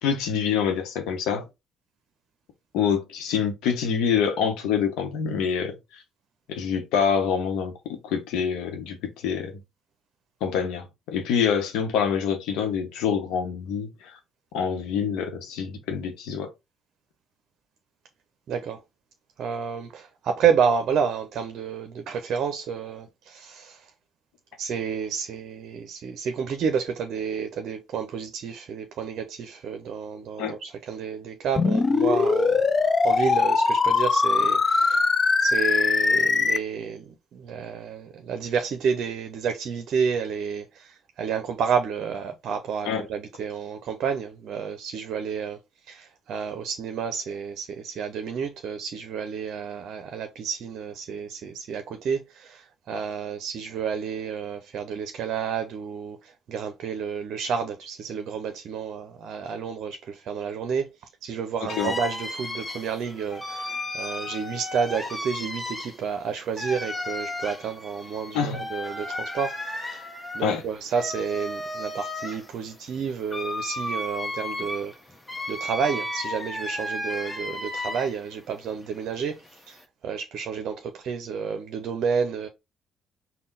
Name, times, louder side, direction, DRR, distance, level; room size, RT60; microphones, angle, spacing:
voice 1, 0.0-1.5 2.7-6.0 6.5-9.6 10.4-14.2 14.5-16.5 30.4-30.6 42.8-43.0 61.8-61.9 68.3-68.6 70.4-70.6, left 7 dB, 80° left, 0.9 m, -26 dB
voice 2, 18.5-18.8 19.4-23.9 24.6-35.1 35.4-45.6 45.9-60.9 61.2-70.1 70.3-74.9 75.5-82.5, right 6 dB, 65° right, 0.5 m, -30 dB
sound 1, 31.6-36.6, left 4 dB, 40° left, 0.4 m, -21 dB
sound 2, 61.7-78.3 78.7-79.8, left 1 dB, 15° left, 1.1 m, -34 dB
3.7 x 2.2 x 3.9 m
hypercardioid pair, 55°, 0 cm